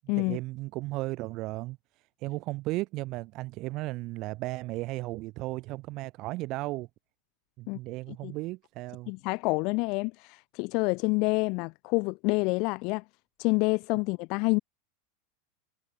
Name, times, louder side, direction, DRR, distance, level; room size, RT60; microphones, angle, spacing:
voice 1, 0.2-1.8 2.2-6.9 7.6-9.1, right 20 dB, 50° right, 3.2 m, -35 dB
voice 2, 9.1-13.0 13.4-14.6, left 29 dB, 55° left, 0.7 m, -27 dB
hypercardioid pair, 95°, 0 cm